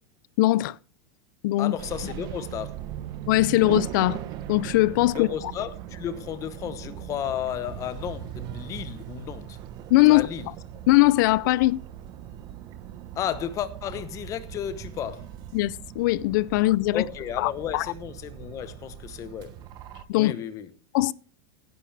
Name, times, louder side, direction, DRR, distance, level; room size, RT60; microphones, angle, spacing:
voice 1, 0.4-0.8 1.4-1.8 3.3-4.2 4.5-5.3 9.9-10.3 10.9-11.8 15.5-17.1 17.4-17.9 20.1-20.3 20.9-21.1, left 18 dB, 50° left, 0.5 m, -21 dB
voice 2, 1.6-2.8 5.1-9.6 10.1-10.5 13.1-15.3 16.9-19.6 20.1-20.7, left 10 dB, 25° left, 1.0 m, -33 dB
sound 1, 1.8-20.0, right 11 dB, 30° right, 1.0 m, -39 dB
16.0 x 10.0 x 3.3 m
supercardioid pair, 165°, 13 cm